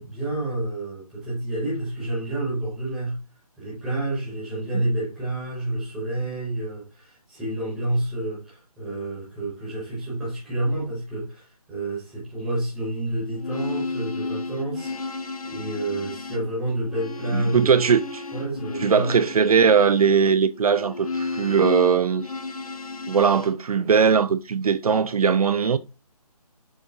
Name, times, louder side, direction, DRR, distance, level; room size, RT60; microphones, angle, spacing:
voice 1, 0.0-3.2 3.6-17.9 18.3-19.1, right 1 dB, ahead, 0.7 m, -29 dB
sound 1, 13.3-23.5, left 3 dB, 65° left, 0.7 m, -33 dB
voice 2, 17.3-18.2 18.8-22.3 23.1-25.8, right 6 dB, 70° right, 0.4 m, -20 dB
6.7 x 2.7 x 2.7 m
figure-of-eight pair, 170°, 20 cm